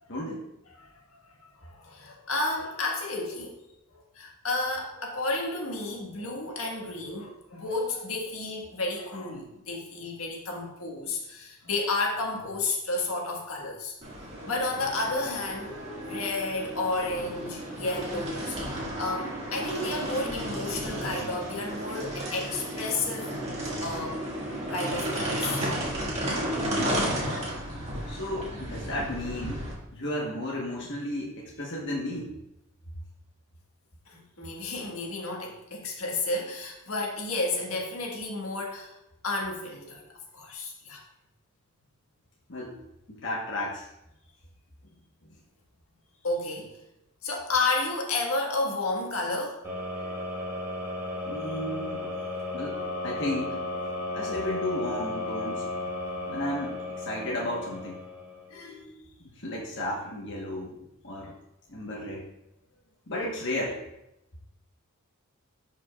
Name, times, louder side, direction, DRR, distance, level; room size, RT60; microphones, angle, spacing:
voice 1, 0.1-0.4 26.7-27.1 28.0-32.3 42.5-42.8 43.1-43.9 51.3-52.1 52.5-53.6 54.1-55.6 56.3-58.0 59.3-60.8 61.0-61.3 61.7-62.3 63.1-63.8, left 1 dB, 55° left, -4 dB, 1.2 m, -33 dB
voice 2, 0.7-3.6 3.9-13.9 14.4-15.7 16.0-23.3 23.8-24.2 24.7-25.7 27.0-27.5 34.1-38.9 39.2-40.0 40.3-41.0 46.2-46.7 47.2-49.6 50.0-50.1 58.5-59.1, left 2 dB, 75° left, -1 dB, 1.5 m, -32 dB
sound 1, 14.0-29.7, right 1 dB, 30° right, 1.8 m, -33 dB
sound 2, 49.6-58.6, left 2 dB, 15° right, 1.9 m, -34 dB
11.5 x 5.2 x 2.3 m, 0.87 s
head